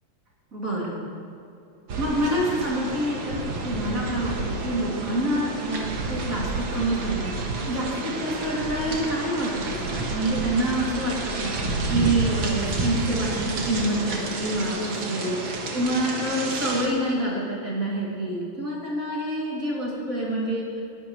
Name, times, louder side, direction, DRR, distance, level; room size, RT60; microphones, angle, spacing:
voice 1, 0.5-1.0 2.0-20.7, right 1 dB, 25° right, -6 dB, 2.6 m, -27 dB
sound 1, 1.9-16.9, right 2 dB, 60° right, 1.2 m, -30 dB
20.0 x 11.0 x 3.2 m, 2.6 s
omnidirectional pair, 4.1 m